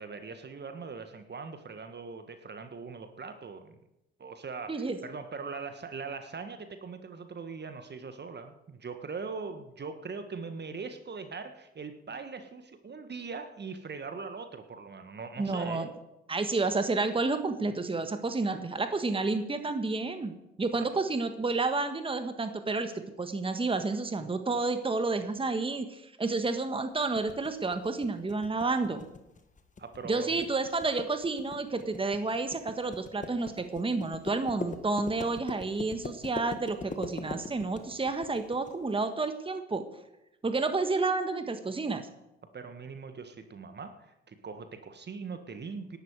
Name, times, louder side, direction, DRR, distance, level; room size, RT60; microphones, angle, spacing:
voice 1, 0.0-3.8 4.2-15.9 20.8-20.9 29.8-30.5 42.5-46.0, right 4 dB, 30° right, 8 dB, 1.5 m, -41 dB
voice 2, 15.4-15.9 16.3-20.3 20.6-29.0 30.0-39.8 40.4-42.1, right 3 dB, 15° right, 8 dB, 1.5 m, -30 dB
sound 1, 27.2-38.7, left 3 dB, 25° left, 1.8 m, -41 dB
18.5 x 11.0 x 4.8 m, 0.92 s
hypercardioid pair, 55°, 32 cm